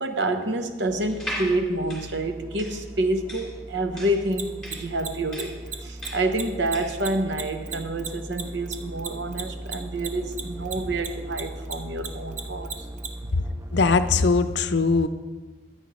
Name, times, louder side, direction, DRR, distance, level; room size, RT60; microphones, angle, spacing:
voice 1, 0.0-12.7, right 1 dB, 70° right, 7 dB, 0.9 m, -28 dB
sound 1, 0.9-14.5, right 1 dB, 15° right, 0.4 m, -39 dB
sound 2, 1.1-7.1, equal, ahead, 2.8 m, -38 dB
Mechanisms, 4.3-11.1 11.3-13.1, right 7 dB, 40° right, 0.7 m, -33 dB
voice 2, 13.7-15.1, left 4 dB, 65° left, 11 dB, 0.5 m, -21 dB
14.5 x 9.3 x 3.1 m, 1.3 s
head